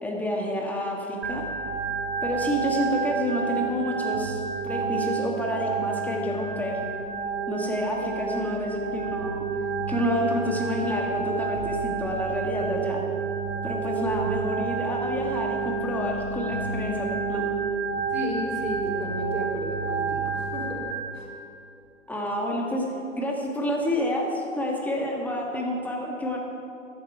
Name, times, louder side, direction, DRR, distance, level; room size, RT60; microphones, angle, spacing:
voice 1, 0.0-1.4 2.2-6.8 7.5-9.5 9.9-13.0 13.6-17.5 22.1-22.9 23.1-26.4, left 1 dB, 5° left, -1 dB, 1.7 m, -29 dB
Organ, 1.2-20.9, right 5 dB, 55° right, 1.5 m, -30 dB
voice 2, 18.1-20.9 21.1-21.3, equal, 90° right, -3 dB, 3.5 m, -34 dB
14.0 x 12.0 x 4.7 m, 2.6 s
figure-of-eight pair, 120°, 38 cm